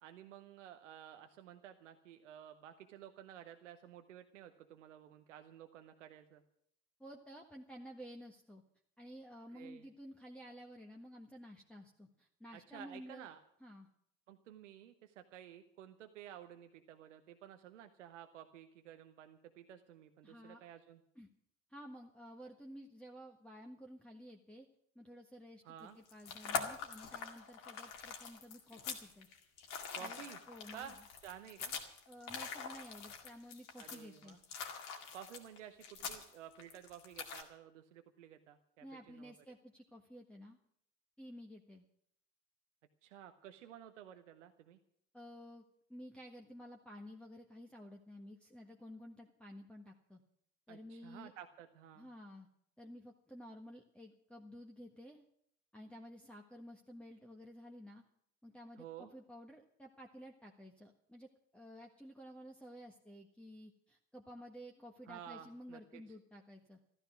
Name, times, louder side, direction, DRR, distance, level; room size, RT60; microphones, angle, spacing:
voice 1, 0.0-6.4 9.5-9.9 12.5-13.4 14.3-21.0 25.6-26.0 29.9-30.4 30.7-31.0 31.2-31.7 33.8-34.4 35.1-39.6 43.0-44.8 50.7-52.1 58.8-59.1 65.1-66.0, right 10 dB, 80° right, 8 dB, 0.8 m, -53 dB
voice 2, 7.0-8.6 9.0-13.3 13.6-13.9 20.2-20.7 21.1-21.3 21.7-24.7 24.9-29.3 30.0-30.2 30.5-30.9 32.1-34.4 38.8-40.6 41.2-41.8 45.1-45.6 45.9-50.2 50.7-51.3 52.0-52.5 52.8-55.2 55.7-58.0 58.4-61.3 61.5-66.8, equal, 5° left, -2 dB, 1.5 m, -53 dB
sound 1, 25.9-37.4, left 6 dB, 60° left, 2.1 m, -44 dB
14.0 x 13.5 x 6.1 m, 0.70 s
figure-of-eight pair, 50°, 36 cm